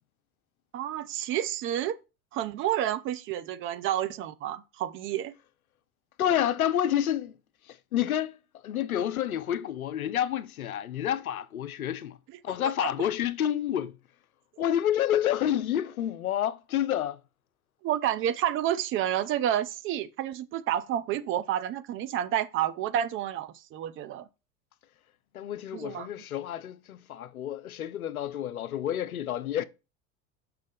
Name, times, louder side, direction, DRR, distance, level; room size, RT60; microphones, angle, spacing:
voice 1, 0.7-2.0 2.3-5.3 12.8-13.1 17.8-24.3 25.7-26.1, right 11 dB, 30° right, 0.4 m, -30 dB
voice 2, 6.2-7.3 7.9-8.4 8.6-12.2 12.4-13.9 14.6-17.2 25.3-29.6, left 11 dB, 80° left, 0.5 m, -29 dB
6.3 x 6.0 x 3.4 m
figure-of-eight pair, 70°, 43 cm